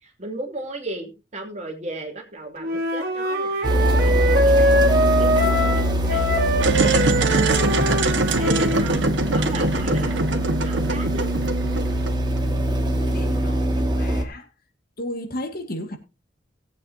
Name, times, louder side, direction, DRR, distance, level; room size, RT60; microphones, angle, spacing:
voice 1, 0.0-6.4 6.8-7.3 7.6-10.2 10.6-11.3, right 2 dB, 40° right, 3.0 m, -36 dB
Wind instrument woodwind instrument, 2.6-8.9, right 1 dB, 55° right, 2.6 m, -22 dB
sound 1, 3.6-14.2, right 1 dB, 25° right, 2.1 m, -23 dB
sound 2, 6.5-12.4, right 2 dB, 80° right, 1.6 m, -23 dB
voice 2, 12.8-14.5 15.0-16.0, left 1 dB, 55° left, 2.1 m, -34 dB
19.0 x 8.4 x 2.8 m
head